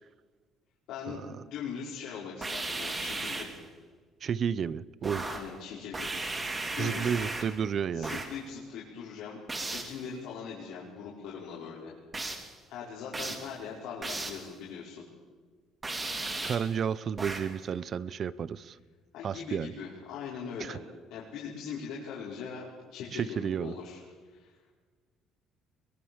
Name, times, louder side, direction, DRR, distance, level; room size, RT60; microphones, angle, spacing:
voice 1, 0.9-3.5 5.2-6.1 6.7-7.2 7.9-9.4 9.7-11.9 12.7-15.0 19.1-20.8 21.1-24.0 24.3-24.6, left 6 dB, 80° left, -5 dB, 5.4 m, -41 dB
sound 1, 2.4-3.6 5.0-5.6 5.9-7.6 8.0-8.4 9.5-10.0 12.1-12.5 13.1-13.5 14.0-14.5 15.8-16.7 17.2-17.6, right 2 dB, 15° right, 2.9 m, -36 dB
voice 2, 4.2-5.2 6.8-8.2 16.4-18.8 19.2-19.7 20.6-20.8 23.1-23.7, right 7 dB, 35° right, 19 dB, 0.6 m, -31 dB
23.5 x 21.5 x 7.3 m, 1.5 s
cardioid pair, 160°, 0 cm